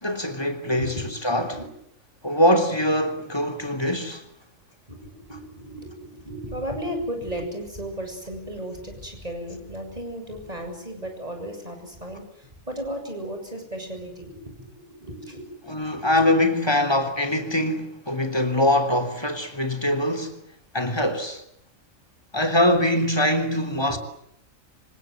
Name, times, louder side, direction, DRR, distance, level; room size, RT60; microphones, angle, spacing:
voice 1, 0.0-1.0 1.2-1.6 2.2-4.2 15.7-20.4 20.7-21.4 22.3-24.0, left 1 dB, 20° left, 3.3 m, -23 dB
voice 2, 0.8-1.7 4.9-15.5 15.8-16.2 23.9-24.0, equal, 25° right, 7.9 m, -35 dB
27.0 x 25.5 x 8.0 m
omnidirectional pair, 1.4 m